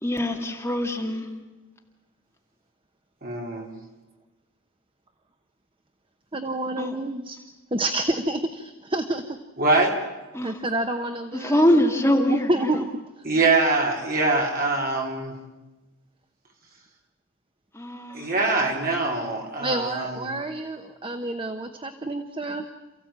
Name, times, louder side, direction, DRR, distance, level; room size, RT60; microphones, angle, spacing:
voice 1, 0.0-1.3 6.8-7.0 10.3-10.6 11.3-12.8 17.7-18.3, left 1 dB, 15° left, 1 dB, 2.3 m, -23 dB
voice 2, 3.2-3.7 9.6-10.0 13.2-15.3 18.1-20.2, right 3 dB, 45° right, 1 dB, 3.9 m, -23 dB
voice 3, 6.3-7.4 7.7-9.2 10.4-12.9 19.6-22.7, right 1 dB, 25° right, 7 dB, 1.0 m, -28 dB
28.5 x 15.5 x 8.8 m, 1.1 s
head